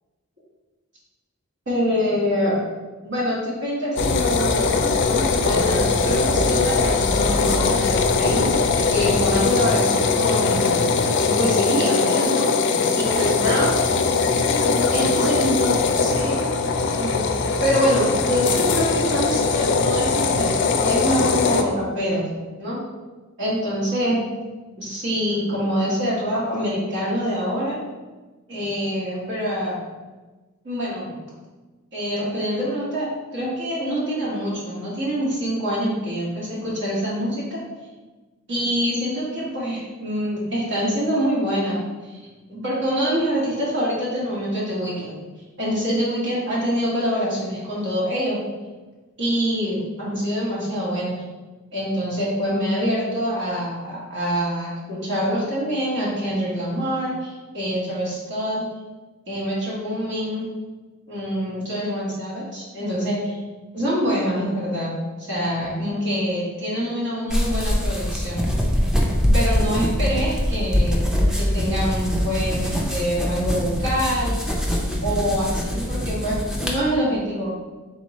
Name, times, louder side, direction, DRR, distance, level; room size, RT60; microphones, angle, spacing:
voice 1, 1.7-2.6 3.0-10.8 11.2-12.5 12.9-14.0 14.9-16.5 17.0-20.5 20.8-22.2 22.6-22.8 23.4-24.2 24.8-27.8 28.5-29.8 30.6-31.2 31.9-37.6 38.5-41.8 42.0-45.1 45.6-48.4 49.2-51.1 51.7-58.6 59.3-60.4 61.1-63.4 63.7-64.9 65.2-68.4 69.2-71.1 71.3-74.4 75.0-77.5, equal, 60° right, -8 dB, 1.4 m, -25 dB
sound 1, 4.0-21.6, left 4 dB, 60° left, 0.4 m, -21 dB
sound 2, 67.3-76.8, equal, 5° right, 0.5 m, -23 dB
3.6 x 3.0 x 4.1 m, 1.3 s
head